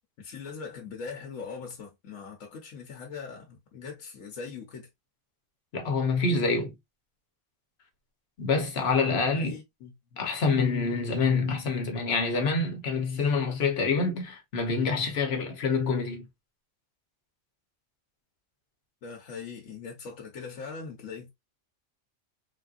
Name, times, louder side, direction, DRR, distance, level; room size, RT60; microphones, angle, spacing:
voice 1, 0.2-4.9 9.3-9.9 19.0-21.3, left 5 dB, 85° left, 1.2 m, -41 dB
voice 2, 5.7-6.7 8.4-9.6 10.2-16.3, left 4 dB, 55° left, 1.1 m, -26 dB
3.5 x 2.6 x 2.4 m
omnidirectional pair, 1.3 m